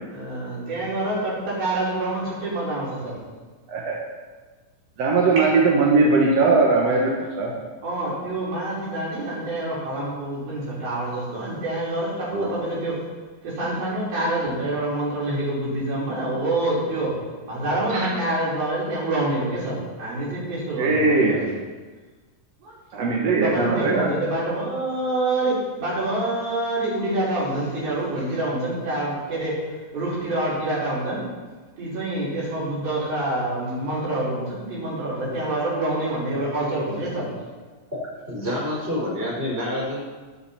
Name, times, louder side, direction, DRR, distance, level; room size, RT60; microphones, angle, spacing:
voice 1, 0.1-3.2 7.8-13.0 13.4-17.1 17.5-21.5 22.6-23.0 23.4-29.5 29.9-31.2 31.8-37.5, right 1 dB, 80° right, -8 dB, 7.1 m, -26 dB
voice 2, 5.0-7.1 7.4-7.5 12.3-12.5 17.9-18.0 20.8-21.4 22.9-24.1, right 3 dB, 55° right, -3 dB, 2.4 m, -19 dB
voice 3, 38.3-40.0, left 1 dB, 15° right, -4 dB, 5.0 m, -27 dB
21.5 x 8.2 x 4.4 m, 1.3 s
omnidirectional pair, 4.1 m